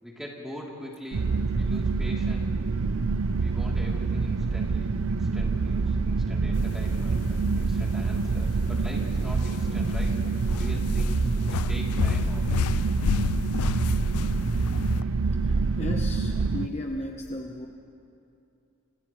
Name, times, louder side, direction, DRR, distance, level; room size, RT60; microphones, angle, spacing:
voice 1, 0.0-2.5 3.3-10.2 10.6-11.2 11.4-12.8 15.0-15.2, equal, ahead, -4 dB, 3.2 m, -42 dB
sound 1, 1.1-16.7, right 4 dB, 70° right, 0.6 m, -26 dB
sound 2, 6.6-15.0, left 7 dB, 85° left, 0.4 m, -32 dB
voice 2, 15.5-17.7, left 1 dB, 30° left, 2 dB, 1.0 m, -35 dB
29.5 x 28.0 x 3.2 m, 2.7 s
head